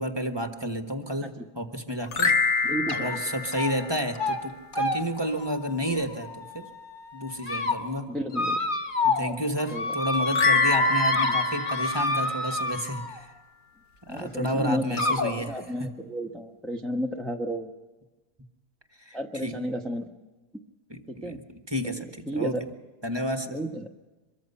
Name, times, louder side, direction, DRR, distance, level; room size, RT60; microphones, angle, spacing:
voice 1, 0.0-2.4 2.9-6.7 7.1-8.1 9.0-13.3 14.1-15.9 19.0-19.6 20.9-22.6 23.0-23.6, equal, 15° right, 5 dB, 1.3 m, -31 dB
sound 1, 2.1-4.6 10.3-12.9, left 5 dB, 60° left, 1.6 m, -27 dB
voice 2, 2.6-3.2 8.1-8.7 9.7-9.9 11.2-11.4 14.1-15.2 15.5-17.7 19.1-20.1 21.1-21.4 21.8-22.6 23.5-23.9, equal, ahead, 1 dB, 0.9 m, -32 dB
sound 2, 2.9-3.2 3.5-3.9 4.2-4.4 4.7-6.7 7.2-7.8 8.3-9.3 9.6-13.2 14.2-14.3 15.0-15.3, left 2 dB, 30° left, 1.7 m, -27 dB
24.0 x 23.0 x 5.6 m, 1.2 s
omnidirectional pair, 1.7 m